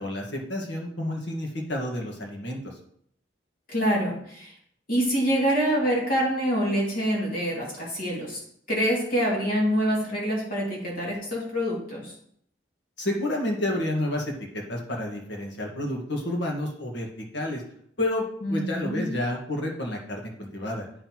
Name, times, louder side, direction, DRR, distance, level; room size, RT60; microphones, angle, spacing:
voice 1, 0.0-2.7 13.0-17.6 18.0-20.9, left 1 dB, 85° left, 0 dB, 1.7 m, -30 dB
voice 2, 3.7-4.5 4.9-8.4 8.7-12.1 18.4-19.1, equal, 50° left, -4 dB, 2.4 m, -26 dB
9.3 x 5.7 x 3.0 m, 0.68 s
head